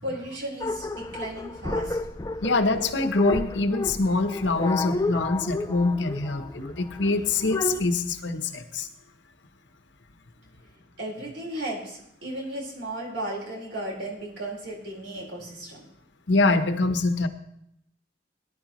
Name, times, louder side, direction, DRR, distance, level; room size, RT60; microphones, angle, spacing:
voice 1, 0.0-2.0 11.0-15.8, right 1 dB, 80° right, -2 dB, 4.7 m, -35 dB
sound 1, 0.6-7.8, left 2 dB, 20° left, 0.5 m, -31 dB
voice 2, 2.4-8.9 16.3-17.3, left 3 dB, 75° left, 9 dB, 1.0 m, -24 dB
19.0 x 11.0 x 3.1 m, 0.75 s
head